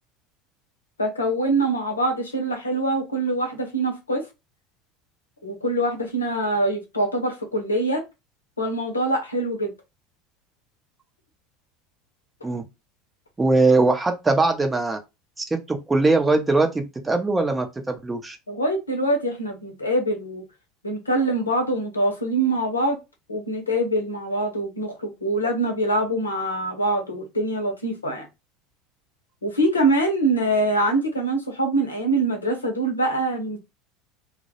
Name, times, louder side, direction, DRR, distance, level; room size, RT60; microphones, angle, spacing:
voice 1, 1.0-4.2 5.4-8.0 8.6-9.7 18.5-20.4 20.8-23.0 23.3-28.3 29.4-33.6, right 1 dB, 85° left, 0.7 m, -24 dB
voice 2, 13.4-15.0 15.4-18.4, right 3 dB, 15° right, 0.6 m, -21 dB
2.2 x 2.0 x 2.8 m
figure-of-eight pair, 75°, 0 cm